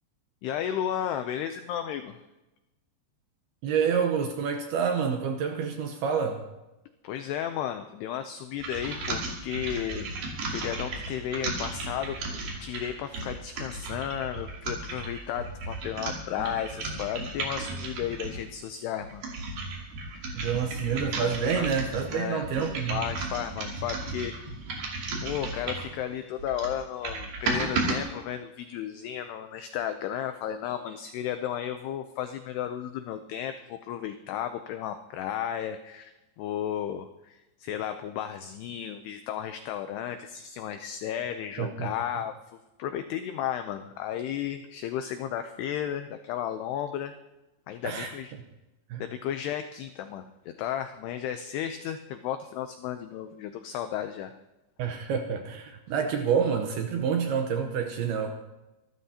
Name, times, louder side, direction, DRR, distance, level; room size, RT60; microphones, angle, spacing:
voice 1, 0.4-2.2 7.0-10.2 10.5-12.2 12.6-19.3 20.1-20.5 21.6-21.7 22.1-22.4 22.9-24.3 25.2-36.1 36.4-42.3 42.8-47.1 47.7-48.3 49.0-54.3, left 10 dB, 90° left, 8 dB, 2.3 m, -34 dB
voice 2, 3.6-6.4 20.3-23.0 41.6-41.9 47.8-48.1 48.9-49.0 54.8-58.3, right 6 dB, 75° right, 4 dB, 2.4 m, -28 dB
sound 1, 8.6-18.5 19.0-26.0 26.4-28.0, right 3 dB, 55° right, 4.2 m, -34 dB
26.5 x 13.0 x 2.8 m, 1.0 s
omnidirectional pair, 5.5 m